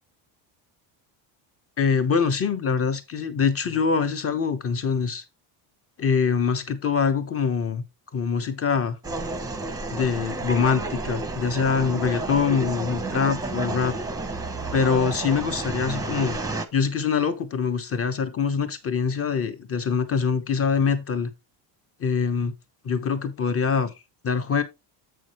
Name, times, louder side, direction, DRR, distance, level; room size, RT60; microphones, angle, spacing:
voice 1, 1.8-5.2 6.0-7.8 8.1-9.0 9.9-13.9 14.7-16.4 16.7-21.3 22.0-22.5 22.8-23.9 24.2-24.6, left 6 dB, 30° left, 1.1 m, -24 dB
sound 1, 9.0-16.7, right 2 dB, 5° right, 0.8 m, -31 dB
7.7 x 6.3 x 3.0 m
cardioid pair, 135°, 48 cm